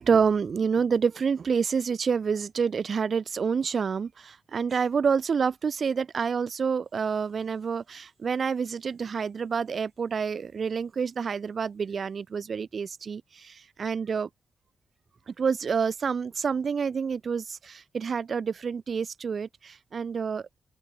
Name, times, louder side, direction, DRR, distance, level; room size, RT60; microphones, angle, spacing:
voice 1, 0.0-14.3 15.3-20.6, right 6 dB, 60° right, 3.8 m, -28 dB
open air
cardioid pair, 60°, 0 cm